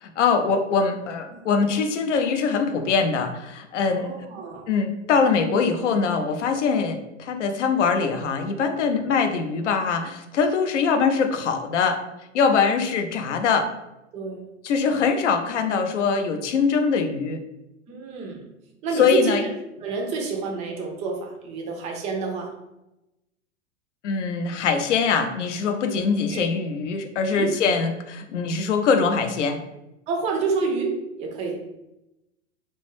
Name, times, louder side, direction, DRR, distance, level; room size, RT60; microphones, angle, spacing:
voice 1, 0.0-4.2 4.7-12.1 12.3-13.7 14.6-17.4 19.0-19.4 24.0-29.6, left 5 dB, 75° left, 6 dB, 0.5 m, -23 dB
voice 2, 1.3-1.8 3.9-4.7 9.1-9.2 14.1-14.5 17.9-18.5 18.8-19.5 19.8-22.5 25.9-26.4 27.3-27.5 30.1-31.6, right 4 dB, 20° right, 2 dB, 0.3 m, -29 dB
2.2 x 2.1 x 3.1 m, 0.92 s
figure-of-eight pair, 95°, 37 cm